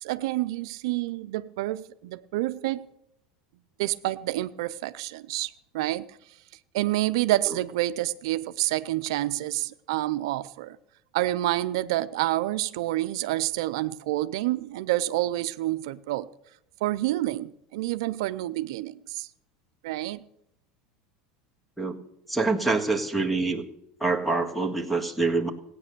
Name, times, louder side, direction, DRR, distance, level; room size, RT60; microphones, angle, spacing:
voice 1, 0.0-2.8 3.8-6.1 6.7-10.8 11.1-16.3 16.8-19.3 19.8-20.2, right 16 dB, 80° right, 0.6 m, -28 dB
voice 2, 22.3-23.6 24.0-25.5, right 3 dB, ahead, 1.6 m, -25 dB
16.5 x 9.2 x 6.8 m
supercardioid pair, 125°, 3 cm